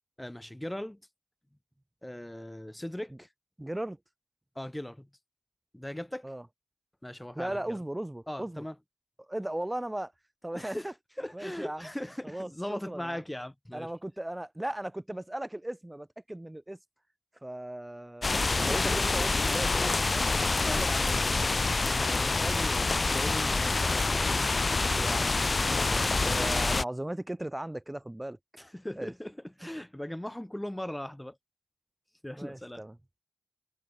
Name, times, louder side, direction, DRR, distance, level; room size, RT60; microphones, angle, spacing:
voice 1, 0.2-1.0 2.0-3.3 4.6-5.1 5.7-6.3 7.0-7.8 8.3-8.7 10.5-10.9 11.2-13.9 18.5-19.0 19.3-19.5 20.7-24.0 28.6-31.4 32.2-32.8, left 1 dB, 10° left, 4.0 m, -39 dB
voice 2, 3.6-4.0 6.2-6.5 7.3-8.6 9.2-10.1 10.4-10.9 11.3-11.9 12.2-13.2 13.7-16.8 17.4-20.3 20.7-20.9 23.8-24.1 24.9-28.4 29.0-29.1 32.4-33.0, right 1 dB, 15° right, 4.4 m, -37 dB
sound 1, 18.2-26.8, left 3 dB, 40° left, 0.6 m, -27 dB
cardioid pair, 50°, 0 cm